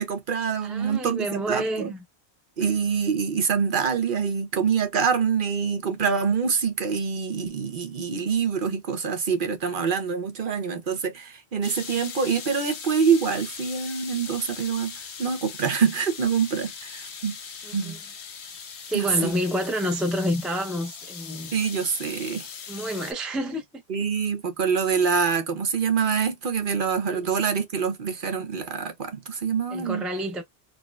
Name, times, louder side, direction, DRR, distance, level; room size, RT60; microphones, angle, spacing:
voice 1, 0.0-1.9 2.6-17.4 17.7-18.0 18.9-19.3 21.5-22.5 23.9-30.0, right 6 dB, 55° right, 1.0 m, -25 dB
voice 2, 0.6-2.0 17.6-18.0 18.9-21.5 22.7-23.8 27.1-27.3 29.7-30.4, equal, ahead, 0.4 m, -29 dB
sound 1, 11.6-23.1, left 6 dB, 90° left, 1.1 m, -40 dB
3.8 x 2.1 x 2.3 m
omnidirectional pair, 1.1 m